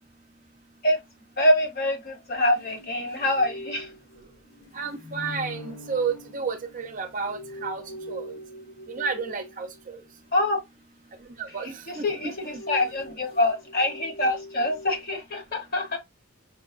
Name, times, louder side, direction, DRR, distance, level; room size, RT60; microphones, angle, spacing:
voice 1, 1.4-3.9 10.3-10.6 11.9-16.0, left 1 dB, 45° left, 1.0 m, -25 dB
sound 1, 2.5-9.8 11.7-15.0, left 1 dB, 80° left, 1.2 m, -42 dB
voice 2, 4.7-8.3 8.9-10.0 11.4-12.6 13.0-13.1, right 5 dB, 40° right, 0.5 m, -32 dB
5.3 x 2.1 x 2.4 m
head